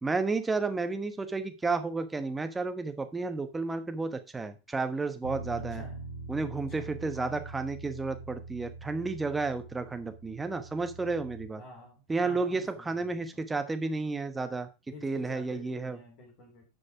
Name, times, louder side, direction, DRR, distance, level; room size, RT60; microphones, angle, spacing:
voice 1, 0.0-5.8 6.3-11.6 12.1-14.7 15.0-16.0, right 3 dB, 10° right, 8 dB, 1.1 m, -32 dB
Bass guitar, 5.2-11.5, right 2 dB, 90° right, 1.7 m, -43 dB
voice 2, 5.5-6.0 6.7-7.5 11.6-13.5 14.9-16.6, left 2 dB, 40° left, 0 dB, 3.3 m, -50 dB
9.8 x 5.3 x 4.8 m, 0.29 s
figure-of-eight pair, 90°, 0 cm